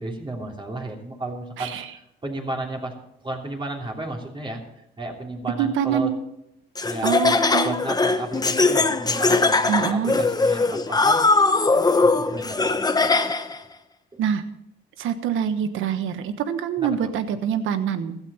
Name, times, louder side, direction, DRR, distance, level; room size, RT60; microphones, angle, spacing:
voice 1, 0.0-2.9 3.2-4.6 5.0-6.1 6.8-7.4 7.6-11.5 11.7-13.2 16.8-17.1, right 2 dB, 25° right, 0 dB, 3.2 m, -33 dB
voice 2, 1.6-1.9 5.6-6.2 7.0-7.8 9.7-10.2 14.2-14.4 15.0-18.2, right 8 dB, 85° right, 10 dB, 1.3 m, -25 dB
Laughter, 6.8-13.6, left 3 dB, 20° left, 1.0 m, -20 dB
16.0 x 13.0 x 4.3 m, 0.79 s
cardioid pair, 90°, 20 cm